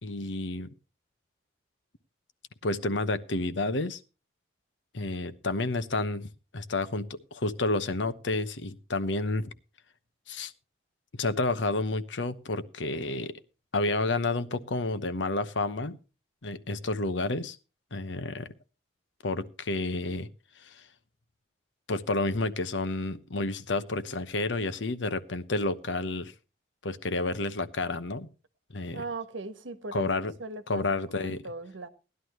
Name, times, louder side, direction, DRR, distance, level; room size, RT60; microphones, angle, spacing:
voice 1, 0.0-0.7 2.6-4.0 4.9-9.5 10.3-10.5 11.1-13.3 13.7-16.0 16.4-17.6 17.9-18.5 19.2-20.3 20.6-20.8 21.9-26.3 26.8-28.3 28.7-29.0 29.9-30.3 30.7-31.4, left 2 dB, 75° left, 1.0 m, -30 dB
voice 2, 28.9-30.1 30.4-31.9, right 3 dB, 85° right, 1.3 m, -39 dB
18.0 x 11.5 x 3.1 m
head